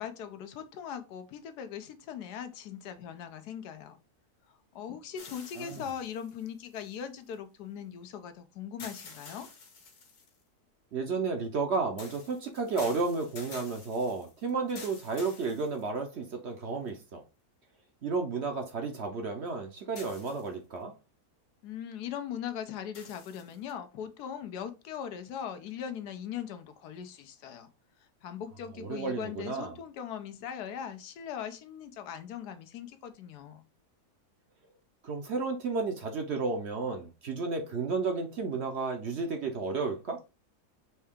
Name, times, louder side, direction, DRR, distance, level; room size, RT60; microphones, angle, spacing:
voice 1, 0.0-4.0 4.5-9.5 21.6-27.7 28.2-33.7, left 8 dB, 90° left, 1.2 m, -40 dB
sound 1, 5.2-7.3 8.8-10.4 12.0-16.3 16.9-17.0 20.0-20.8 22.9-23.7, left 4 dB, 70° left, 1.5 m, -49 dB
voice 2, 10.9-17.2 18.0-20.9 28.8-29.7 35.0-40.2, right 4 dB, 55° right, 0.8 m, -32 dB
4.4 x 2.8 x 3.5 m
omnidirectional pair, 1.7 m